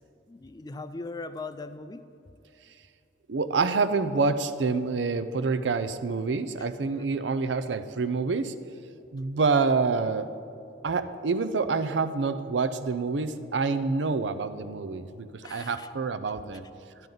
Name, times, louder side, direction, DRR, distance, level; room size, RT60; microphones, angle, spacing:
voice 1, 0.3-2.0 15.4-15.9, left 3 dB, 20° left, 11 dB, 0.4 m, -39 dB
voice 2, 3.3-8.5 9.1-10.3 10.8-16.6, right 4 dB, 90° right, 11 dB, 0.5 m, -27 dB
12.0 x 10.5 x 3.9 m, 2.6 s
head